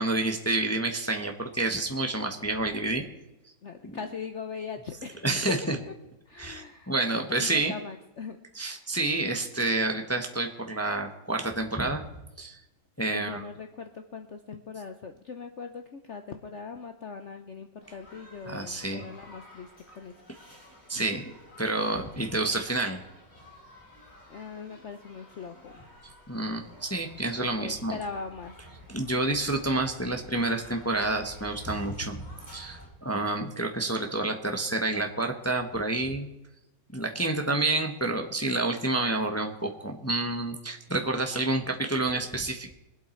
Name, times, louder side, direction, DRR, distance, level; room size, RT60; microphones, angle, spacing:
voice 1, 0.0-3.0 5.2-5.8 6.4-7.7 8.6-12.0 12.4-12.6 13.0-13.4 18.5-19.0 20.9-21.2 21.6-23.0 26.3-28.0 28.9-32.2 32.5-36.3 36.9-42.7, right 2 dB, 10° left, 4 dB, 0.9 m, -29 dB
voice 2, 3.6-5.8 6.3-8.9 13.1-19.7 20.0-20.1 20.5-21.2 24.3-26.0 27.3-28.9, left 5 dB, 50° left, 6 dB, 0.9 m, -41 dB
sound 1, 17.8-32.9, left 1 dB, 35° left, 6.1 m, -51 dB
23.0 x 8.2 x 4.5 m, 0.93 s
omnidirectional pair, 1.9 m